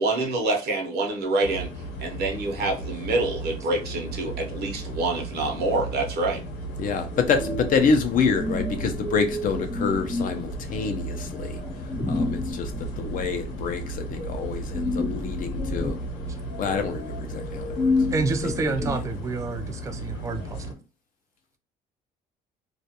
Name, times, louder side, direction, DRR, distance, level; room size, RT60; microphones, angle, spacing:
voice 1, 0.0-1.7 2.0-6.4, right 2 dB, 70° right, 0.8 m, -26 dB
sound 1, 1.4-20.7, right 2 dB, 75° left, 0.9 m, -35 dB
voice 2, 6.8-11.6 12.0-15.9 16.6-17.9 18.4-18.9, left 5 dB, 55° left, 0.5 m, -27 dB
sound 2, 7.1-19.0, left 2 dB, 40° left, 1.0 m, -31 dB
voice 3, 18.1-20.7, right 4 dB, 20° right, 0.3 m, -29 dB
2.4 x 2.2 x 2.8 m
cardioid pair, 110°, 17 cm